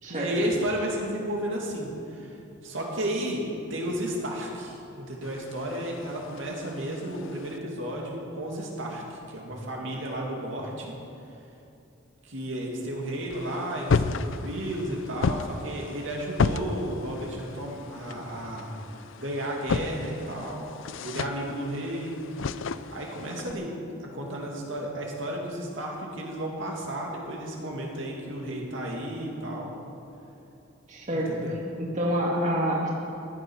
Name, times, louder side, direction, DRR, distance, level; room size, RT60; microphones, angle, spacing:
voice 1, 0.1-2.4 2.6-3.4 3.7-10.9 12.2-18.8 19.2-20.7 21.0-22.2 22.9-23.7 24.1-29.7 31.3-31.6, right 1 dB, 65° right, -2 dB, 2.4 m, -33 dB
sound 1, 5.2-7.6 13.3-23.5, left 4 dB, 70° left, 0.5 m, -33 dB
voice 2, 30.9-32.9, equal, 35° right, -3 dB, 2.1 m, -28 dB
15.0 x 10.5 x 6.3 m, 2.8 s
head